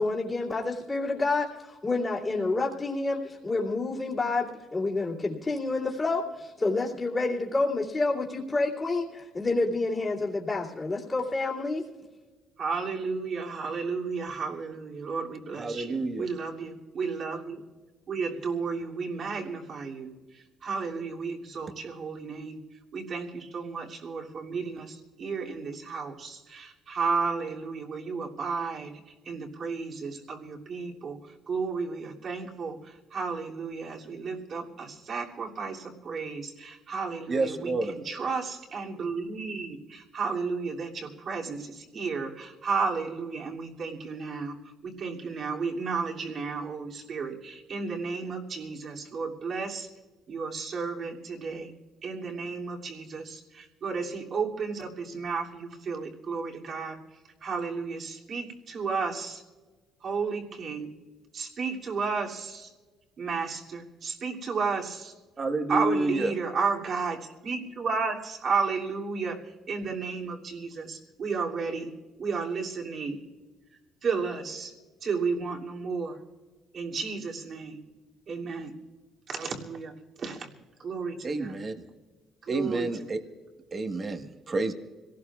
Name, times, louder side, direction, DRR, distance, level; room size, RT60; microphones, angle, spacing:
voice 1, 0.0-11.8, left 3 dB, 25° left, -7 dB, 2.7 m, -28 dB
voice 2, 12.6-17.6 18.1-22.6 22.9-31.2 31.5-49.9 50.3-51.7 52.0-57.0 57.4-59.4 60.0-60.9 61.3-62.7 63.2-65.1 65.7-71.9 72.2-73.2 74.0-74.7 75.0-76.2 76.7-77.8 78.3-78.7 79.3-80.5 80.8-81.6 82.4-82.9, right 5 dB, 55° right, -1 dB, 2.8 m, -33 dB
voice 3, 15.6-16.3 37.3-37.9 65.4-66.3 81.2-81.7 82.5-83.2 83.7-84.7, right 2 dB, 35° right, 6 dB, 1.4 m, -29 dB
26.0 x 18.0 x 2.4 m, 1.3 s
cardioid pair, 90°, 0 cm